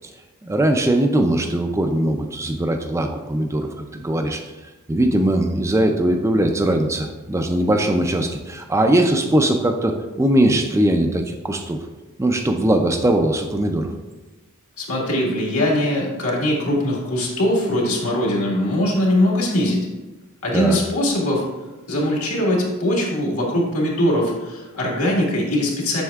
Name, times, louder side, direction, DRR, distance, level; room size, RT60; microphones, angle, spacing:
voice 1, 0.4-4.4 4.9-11.8 12.2-13.9 20.5-20.8, right 1 dB, 15° right, 4 dB, 0.4 m, -20 dB
voice 2, 14.8-19.9 20.4-21.4 21.9-26.0, left 1 dB, 75° left, -2 dB, 1.8 m, -21 dB
7.7 x 6.3 x 2.4 m, 1.1 s
head